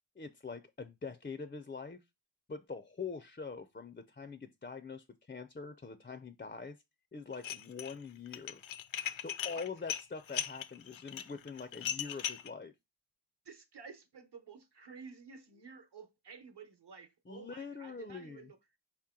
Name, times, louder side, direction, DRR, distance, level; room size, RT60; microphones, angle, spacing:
voice 1, 0.2-2.0 2.5-6.8 7.1-8.6 9.2-12.7 17.3-18.5, left 5 dB, 20° left, 0.4 m, -44 dB
Dishes pots and pans, 7.3-7.9 8.3-12.5, left 10 dB, 75° left, 0.5 m, -38 dB
voice 2, 13.4-18.6, right 5 dB, 55° right, 1.0 m, -52 dB
4.4 x 2.9 x 3.6 m
wide cardioid pair, 45°, 47 cm